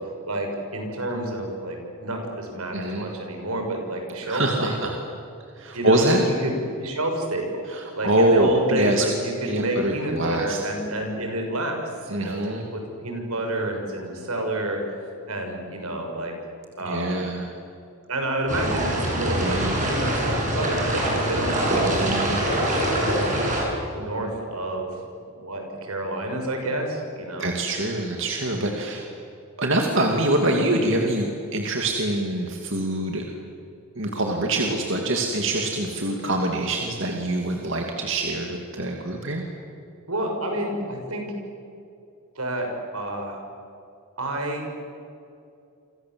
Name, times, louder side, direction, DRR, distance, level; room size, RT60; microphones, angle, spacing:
voice 1, 0.3-4.8 5.7-7.6 7.9-12.4 12.7-16.3 16.8-17.2 18.1-22.1 22.9-23.2 23.8-24.9 25.4-27.5 40.1-41.2 42.3-42.7 42.9-43.4 44.2-44.7, right 1 dB, 85° right, 3 dB, 6.6 m, -29 dB
voice 2, 2.7-3.1 4.2-4.9 5.6-6.3 7.7-9.1 9.4-10.6 12.1-12.6 16.8-17.5 19.4-19.9 21.7-22.5 27.4-29.1 29.6-33.2 33.9-39.4, right 1 dB, 55° right, 2 dB, 2.6 m, -25 dB
sound 1, 18.5-23.6, right 1 dB, 35° right, 7.2 m, -24 dB
30.0 x 25.5 x 7.8 m, 2.5 s
head